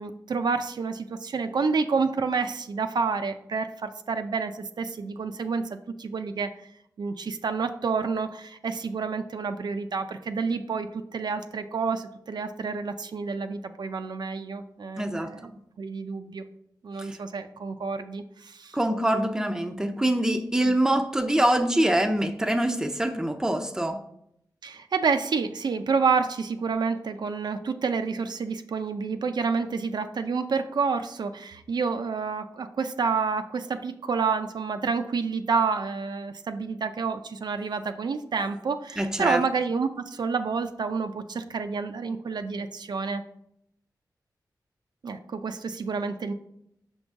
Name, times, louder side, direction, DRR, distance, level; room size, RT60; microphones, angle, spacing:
voice 1, 0.0-6.5 7.0-15.5 15.8-16.4 16.8-18.8 20.6-20.7 24.6-43.2 45.0-46.3, right 5 dB, 70° right, 8 dB, 0.4 m, -29 dB
voice 2, 15.0-15.3 17.0-17.1 18.7-24.0 39.0-39.4, right 1 dB, 10° right, 7 dB, 0.5 m, -24 dB
6.0 x 5.4 x 3.5 m, 0.74 s
wide cardioid pair, 110°, 8 cm